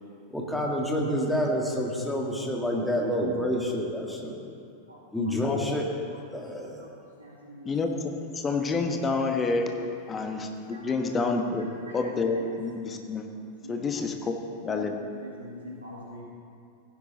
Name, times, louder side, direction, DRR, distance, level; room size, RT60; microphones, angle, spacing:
voice 1, 0.3-4.4 5.1-5.9 6.3-6.8, equal, 5° left, -1 dB, 2.0 m, -28 dB
voice 2, 4.9-5.3 6.1-6.2 7.2-7.7 10.1-10.2 10.7-10.9 11.9-12.1 13.6-13.9 14.7-14.9 15.2-16.2, left 1 dB, 80° right, -6 dB, 1.8 m, -44 dB
voice 3, 5.4-5.8 7.6-9.7 10.1-11.7 11.9-13.3 13.7-14.3 14.6-15.0, left 3 dB, 20° left, 4 dB, 1.2 m, -28 dB
15.5 x 10.0 x 4.1 m, 2.5 s
figure-of-eight pair, 90°, 0 cm